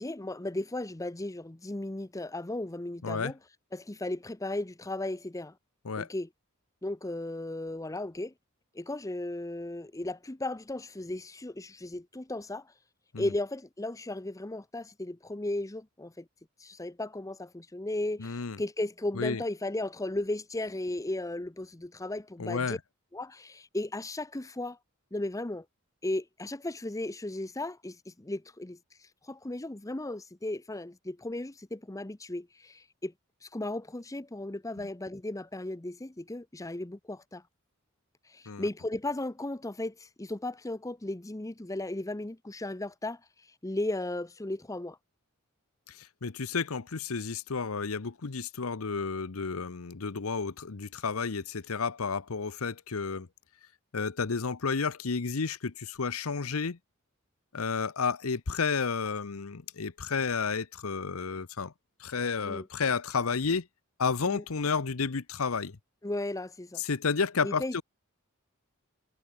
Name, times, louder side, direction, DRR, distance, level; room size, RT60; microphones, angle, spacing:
voice 1, 0.0-3.4 3.7-5.5 6.0-6.3 6.8-8.3 8.7-12.7 13.2-16.2 16.6-22.8 23.1-24.8 25.1-25.6 26.0-33.1 33.4-37.4 38.3-43.2 43.6-45.0 62.4-62.7 64.3-64.4 66.0-66.8 67.4-67.8, left 2 dB, 15° left, 0.7 m, -35 dB
voice 2, 18.2-18.6 19.1-19.4 22.4-22.8 38.5-38.7 45.9-53.3 53.9-56.8 57.5-61.7 62.0-63.7 64.0-65.8 66.8-67.8, left 5 dB, 85° left, 0.9 m, -31 dB
head